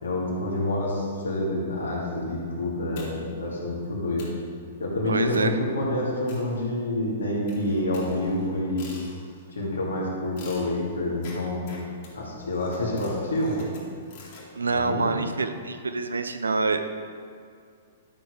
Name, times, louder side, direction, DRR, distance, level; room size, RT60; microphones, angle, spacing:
voice 1, 0.0-4.3 4.8-8.9 9.5-11.7 12.1-13.7 14.6-15.1, left 1 dB, 70° left, -3 dB, 2.5 m, -28 dB
sound 1, 3.0-3.4 3.8-3.9 4.2-4.5 5.3-5.6 6.3-7.0 7.5-9.5 10.4-14.5, left 3 dB, 45° left, 2.7 m, -47 dB
voice 2, 5.1-5.6 14.5-16.9, right 3 dB, 75° right, 8 dB, 0.7 m, -26 dB
11.5 x 6.3 x 5.0 m, 2.3 s
figure-of-eight pair, 110°, 0 cm